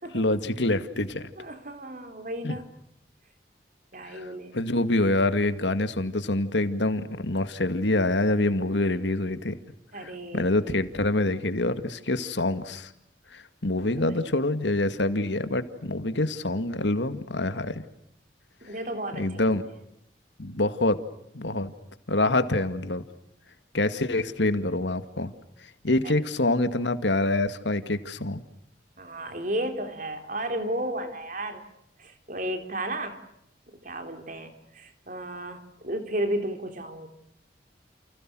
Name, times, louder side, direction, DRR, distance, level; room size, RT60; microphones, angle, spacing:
voice 1, 0.1-1.3 2.4-2.6 4.1-4.2 4.5-9.6 10.0-12.9 13.3-17.8 19.2-19.6 20.4-21.0 21.3-21.7 22.1-23.0 23.7-25.3 25.8-28.4, left 2 dB, 85° left, 10 dB, 2.1 m, -26 dB
voice 2, 1.4-2.6 3.9-4.6 9.9-10.5 13.7-14.2 18.6-19.5 26.0-26.2 29.0-31.6 32.0-33.2 33.8-37.1, right 1 dB, 45° right, 7 dB, 3.7 m, -33 dB
30.0 x 29.5 x 6.3 m, 0.77 s
head